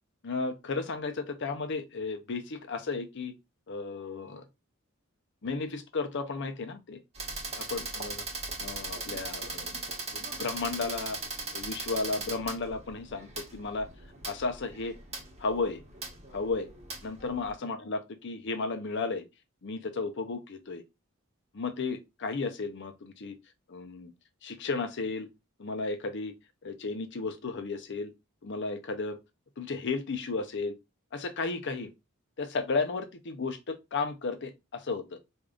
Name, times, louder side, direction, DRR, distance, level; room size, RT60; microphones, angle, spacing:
voice 1, 0.2-3.3 3.7-4.5 5.4-7.0 7.6-8.2 8.6-11.2 11.5-13.9 14.2-14.9 15.4-15.8 16.3-16.7 17.0-19.2 19.6-20.8 21.5-23.4 23.7-24.1 24.4-25.3 25.6-26.3 26.6-28.1 28.4-29.2 29.6-30.7 31.1-31.9 32.4-35.2, left 4 dB, 60° left, 0.6 m, -34 dB
sound 1, 7.1-17.5, right 3 dB, 30° right, 1.2 m, -39 dB
4.8 x 2.6 x 2.4 m
head